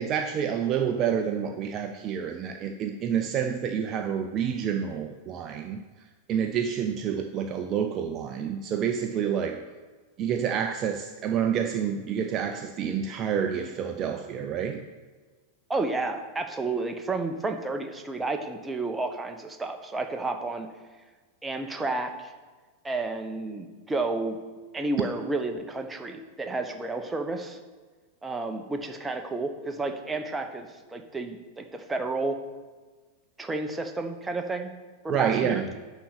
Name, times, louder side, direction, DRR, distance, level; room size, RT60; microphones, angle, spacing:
voice 1, 0.0-5.8 6.3-9.6 10.2-14.9 35.1-35.7, right 8 dB, 30° right, 6 dB, 0.6 m, -28 dB
voice 2, 15.7-20.7 21.4-22.3 22.8-24.4 24.7-27.6 28.2-32.4 33.4-34.7 35.0-35.6, right 3 dB, 10° right, 5 dB, 1.0 m, -31 dB
11.5 x 4.3 x 6.7 m, 1.4 s
figure-of-eight pair, 90°, 0 cm